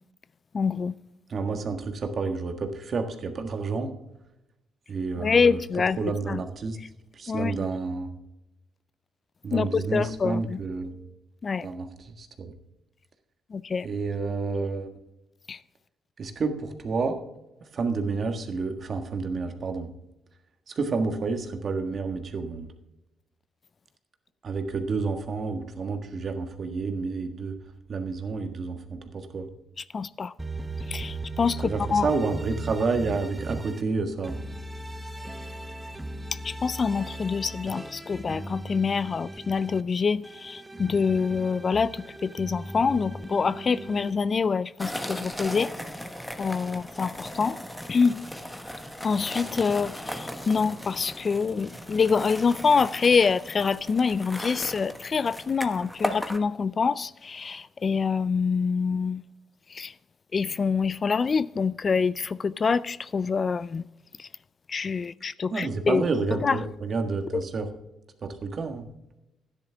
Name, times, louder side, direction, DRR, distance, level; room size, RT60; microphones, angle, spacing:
voice 1, 0.5-0.9 5.2-6.0 6.3-6.4 7.3-7.6 9.5-10.6 11.4-11.7 13.5-13.9 15.5-15.6 29.9-30.3 30.9-32.1 36.4-45.7 46.4-47.6 47.9-48.2 49.0-59.2 59.7-59.9 60.3-63.9 64.2-64.3 64.7-66.0 66.4-66.6 67.3-67.4, left 5 dB, 40° left, 0.3 m, -26 dB
voice 2, 1.3-3.9 4.9-5.6 6.0-6.8 7.1-8.1 9.4-10.9 11.6-12.5 13.8-14.9 16.2-17.2 17.7-19.9 20.7-22.7 24.4-27.5 27.9-29.5 31.6-34.4 65.5-67.7 68.2-68.9, right 4 dB, 50° right, 1.6 m, -29 dB
sound 1, 30.4-33.8 34.2-39.8 40.2-44.1, right 2 dB, 10° right, 0.7 m, -38 dB
sound 2, 44.8-56.4, equal, 5° left, 1.1 m, -37 dB
12.5 x 10.0 x 3.5 m
cardioid pair, 90°, 0 cm